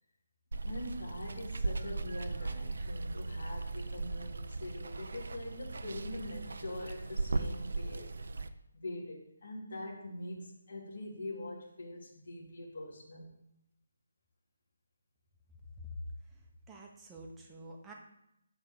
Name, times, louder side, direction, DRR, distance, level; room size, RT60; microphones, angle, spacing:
Water, 0.5-8.5, right 3 dB, 65° right, 0.7 m, -38 dB
voice 1, 0.6-8.1 8.7-13.3, left 1 dB, 50° left, -3 dB, 2.7 m, -43 dB
voice 2, 16.3-17.9, left 1 dB, 5° right, -1 dB, 1.0 m, -48 dB
10.5 x 3.6 x 7.1 m, 0.82 s
hypercardioid pair, 175°, 0 cm